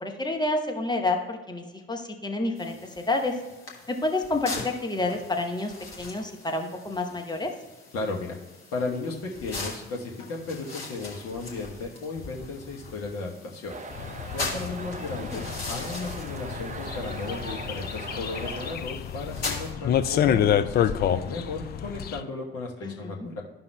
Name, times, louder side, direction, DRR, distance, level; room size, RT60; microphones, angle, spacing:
voice 1, 0.0-3.4 3.9-7.5 15.1-15.4 22.8-23.3, left 2 dB, 15° left, 2 dB, 0.9 m, -29 dB
sound 1, 2.6-19.7, left 3 dB, 80° left, 1.0 m, -40 dB
voice 2, 7.9-8.4 8.7-13.7 14.3-23.4, left 3 dB, 50° left, -1 dB, 1.2 m, -35 dB
sound 2, 13.7-18.8, right 3 dB, 25° right, 0.6 m, -40 dB
sound 3, 13.9-22.2, left 9 dB, 35° left, 0.4 m, -28 dB
13.0 x 5.4 x 2.3 m, 1.1 s
figure-of-eight pair, 45°, 30 cm